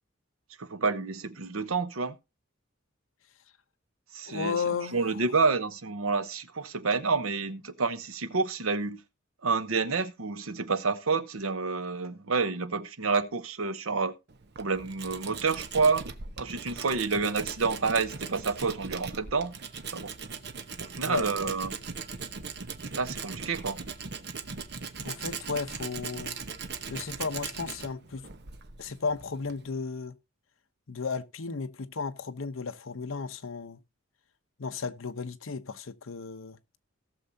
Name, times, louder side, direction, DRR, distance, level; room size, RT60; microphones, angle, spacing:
voice 1, 0.6-2.2 4.1-4.6 4.9-9.0 9.4-14.1 14.6-16.0 16.4-19.5 19.9-20.1 20.8-21.7 22.9-23.8, right 4 dB, 90° right, 0.9 m, -29 dB
voice 2, 4.3-5.0 21.1-21.5 25.0-26.4 26.9-28.3 28.8-30.1 30.9-33.8 34.6-36.6, left 5 dB, 75° left, 0.8 m, -34 dB
Tools, 14.3-29.7, right 5 dB, 55° right, 0.9 m, -39 dB
17.5 x 6.6 x 2.7 m
head